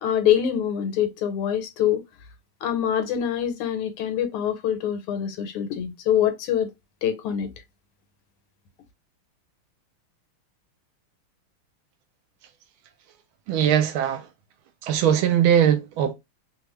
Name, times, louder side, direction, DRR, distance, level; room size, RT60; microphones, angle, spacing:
voice 1, 0.0-2.0 2.6-6.7 7.0-7.5, left 9 dB, 85° left, 1.6 m, -24 dB
voice 2, 13.5-14.3 14.8-16.1, right 9 dB, 80° right, 1.3 m, -20 dB
3.4 x 2.3 x 3.0 m
omnidirectional pair, 2.4 m